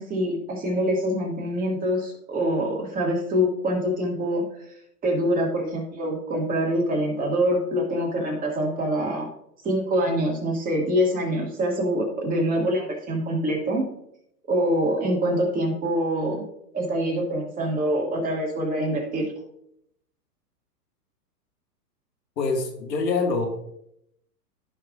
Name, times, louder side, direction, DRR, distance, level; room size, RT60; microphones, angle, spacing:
voice 1, 0.0-4.4 5.0-9.3 9.6-13.8 14.5-16.4 16.7-19.3, equal, 15° right, 0 dB, 2.0 m, -25 dB
voice 2, 22.4-23.5, left 4 dB, 80° left, 3 dB, 2.0 m, -25 dB
15.5 x 5.6 x 2.5 m, 0.75 s
hypercardioid pair, 130°, 49 cm